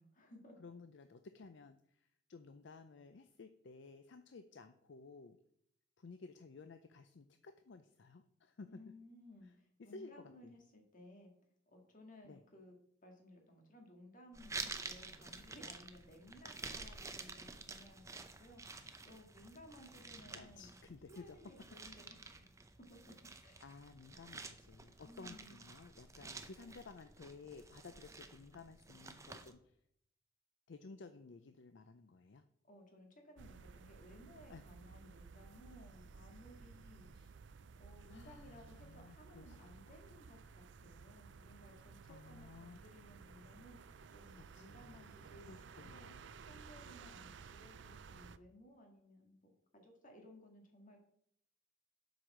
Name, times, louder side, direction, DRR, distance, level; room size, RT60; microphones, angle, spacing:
voice 1, 0.0-0.6 8.7-11.3 11.7-12.7 13.0-20.7 21.1-22.5 22.9-23.0 23.4-23.6 25.1-25.6 32.7-37.1 37.8-46.1 46.4-51.0, left 1 dB, 40° left, 2 dB, 2.0 m, -59 dB
voice 2, 0.6-5.4 6.0-8.8 9.4-9.5 9.8-10.5 12.2-12.4 18.8-18.9 20.3-21.4 23.6-29.7 30.7-32.4 34.5-34.6 37.1-37.3 38.1-39.6 39.9-40.0 42.1-42.8 44.5-45.1 45.5-46.3, left 4 dB, 60° left, 9 dB, 0.5 m, -55 dB
sound 1, 14.3-29.5, right 3 dB, 15° right, 0.6 m, -50 dB
sound 2, 33.4-48.4, right 5 dB, 60° right, 0.4 m, -56 dB
8.0 x 4.8 x 6.1 m, 0.70 s
head